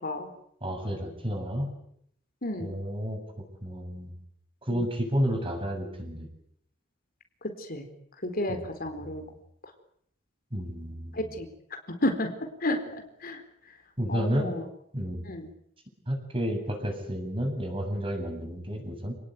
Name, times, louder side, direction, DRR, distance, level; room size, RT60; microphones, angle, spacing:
voice 1, 0.6-1.7 2.6-3.2 3.6-4.1 4.7-6.3 8.5-8.7 9.0-9.2 10.5-11.2 14.0-14.5 14.9-15.3 16.1-19.1, equal, 25° right, 3 dB, 7.8 m, -31 dB
voice 2, 2.4-2.8 4.7-4.8 7.4-7.9 8.2-9.2 11.1-11.5 11.9-12.3 12.6-13.4 14.1-14.7 15.2-15.5, left 1 dB, 50° left, 6 dB, 4.2 m, -31 dB
28.5 x 19.0 x 9.5 m, 0.71 s
head